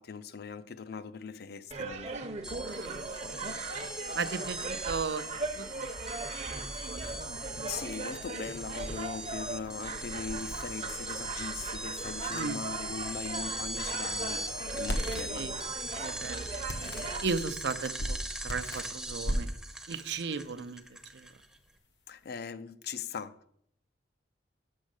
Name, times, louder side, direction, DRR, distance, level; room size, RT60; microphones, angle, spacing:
voice 1, 0.0-2.2 7.6-15.5 22.1-23.5, left 5 dB, 60° left, 0.5 m, -40 dB
sound 1, 1.7-17.2, right 3 dB, 40° right, 0.8 m, -39 dB
sound 2, 2.4-21.6, right 1 dB, 5° right, 0.7 m, -40 dB
voice 2, 2.6-3.5 4.1-5.2 5.6-7.1 12.3-12.6 15.3-15.5 16.0-16.5 17.0-19.5 19.9-21.3, right 5 dB, 70° right, 0.6 m, -37 dB
sound 3, 2.7-22.3, equal, 85° left, 1.2 m, -43 dB
6.3 x 6.3 x 6.4 m
head